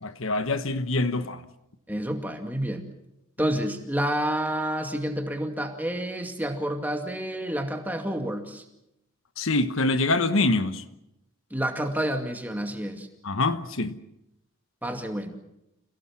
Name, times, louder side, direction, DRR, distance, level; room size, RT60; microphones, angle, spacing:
voice 1, 0.0-1.4 9.4-10.8 13.2-14.0, left 2 dB, 75° left, 1.2 m, -25 dB
voice 2, 1.9-2.8 3.4-8.6 11.5-13.1 14.8-15.4, right 1 dB, 10° right, 2.3 m, -29 dB
28.5 x 17.5 x 7.4 m
head